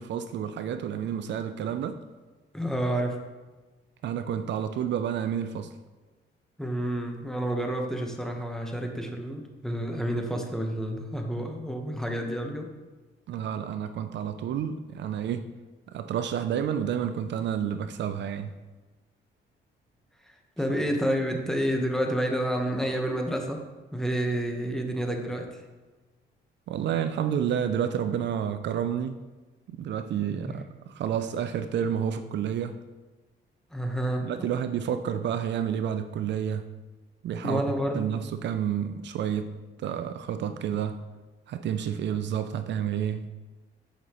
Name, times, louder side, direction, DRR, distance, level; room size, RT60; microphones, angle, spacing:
voice 1, 0.0-2.0 4.0-5.7 13.3-15.5 15.9-18.5 26.7-29.2 29.7-32.8 34.2-36.7 37.2-37.6 37.9-41.0 41.5-43.3, right 8 dB, 65° right, 10 dB, 0.4 m, -30 dB
voice 2, 2.5-3.2 6.6-12.7 20.2-23.7 23.9-25.7 30.5-30.6 33.7-34.5 37.4-38.0, equal, ahead, 2 dB, 1.0 m, -29 dB
7.9 x 5.5 x 3.0 m, 1.3 s
cardioid pair, 90°, 20 cm